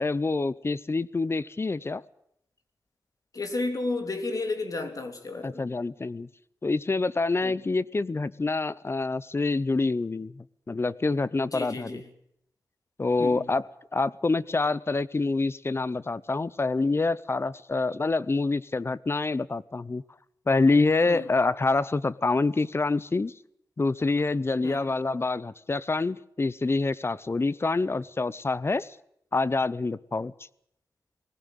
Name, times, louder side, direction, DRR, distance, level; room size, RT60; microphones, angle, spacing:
voice 1, 0.0-2.0 5.4-6.3 6.6-12.0 13.0-20.0 20.5-23.3 23.8-29.0 29.3-30.3, left 3 dB, 35° left, 19 dB, 0.7 m, -26 dB
voice 2, 3.3-5.7 7.4-7.6 11.5-12.1 13.2-13.5 21.1-21.2 24.6-24.9, left 3 dB, 60° left, 6 dB, 3.2 m, -32 dB
19.5 x 16.5 x 9.1 m, 0.75 s
wide cardioid pair, 70°, 7 cm